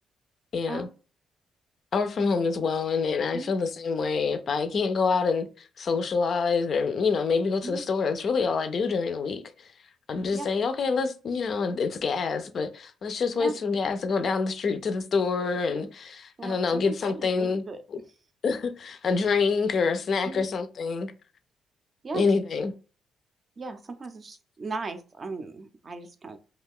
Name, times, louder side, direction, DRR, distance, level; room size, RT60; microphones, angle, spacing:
voice 1, 0.5-0.9 1.9-9.7 10.1-17.6 17.9-18.0 18.4-21.1 22.1-22.7, left 5 dB, 55° left, 0.4 m, -26 dB
voice 2, 16.4-17.8 20.2-20.4 22.0-22.2 23.6-26.4, right 3 dB, 40° right, 0.5 m, -37 dB
2.4 x 2.3 x 3.5 m
cardioid pair, 90°, 0 cm